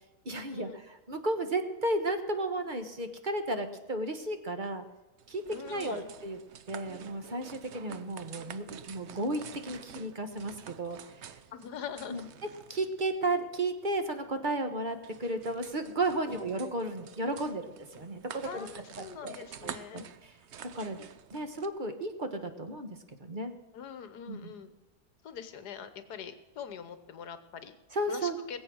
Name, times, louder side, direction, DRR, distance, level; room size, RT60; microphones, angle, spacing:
voice 1, 0.2-4.8 5.3-6.4 6.7-11.0 12.1-12.3 12.7-18.7 19.2-19.4 19.6-20.3 20.7-21.0 21.3-22.9 23.2-23.5 24.3-24.5 27.9-28.3, right 2 dB, 35° right, 7 dB, 1.2 m, -33 dB
sound 1, 5.2-21.7, right 8 dB, 55° right, 0.8 m, -49 dB
voice 2, 5.5-6.0 11.5-12.2 16.3-16.5 18.4-20.1 23.7-24.7 25.2-27.8 28.1-28.6, left 7 dB, 70° left, 11 dB, 1.6 m, -43 dB
20.0 x 7.9 x 6.3 m, 1.2 s
omnidirectional pair, 1.8 m